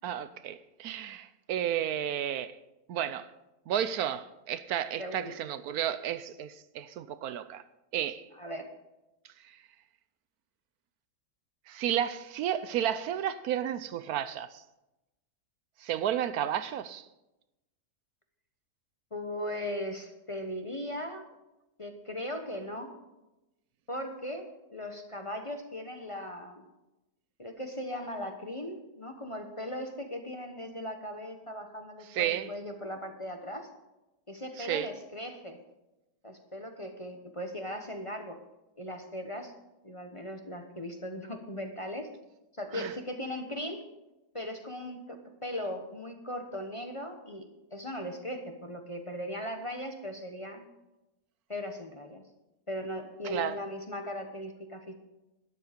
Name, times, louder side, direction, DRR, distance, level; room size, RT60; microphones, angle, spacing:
voice 1, 0.0-2.6 2.9-3.3 3.7-7.6 7.9-8.3 9.4-9.6 11.7-14.6 15.8-17.1 32.1-32.5 34.6-34.9 42.7-42.9 53.2-53.6, right 10 dB, 75° right, 1.1 m, -32 dB
voice 2, 5.0-5.3 8.4-8.7 19.1-21.3 21.8-22.9 23.9-26.6 27.4-33.7 34.3-35.6 36.2-38.4 38.8-39.5 39.8-42.1 42.5-43.9 44.3-50.7 51.5-52.2 52.7-54.9, left 1 dB, 25° left, 1.0 m, -38 dB
12.5 x 11.0 x 5.1 m
omnidirectional pair, 1.7 m